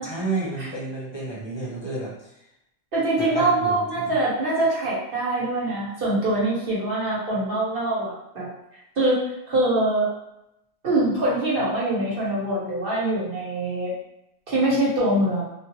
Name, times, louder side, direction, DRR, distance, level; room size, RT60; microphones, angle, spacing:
voice 1, 0.0-2.1 3.2-4.1, right 3 dB, 30° left, -6 dB, 0.6 m, -31 dB
voice 2, 2.9-8.5 9.0-10.1 10.8-14.0 14.5-15.5, right 1 dB, 60° right, -7 dB, 1.2 m, -24 dB
2.3 x 2.2 x 3.0 m, 0.84 s
omnidirectional pair, 1.1 m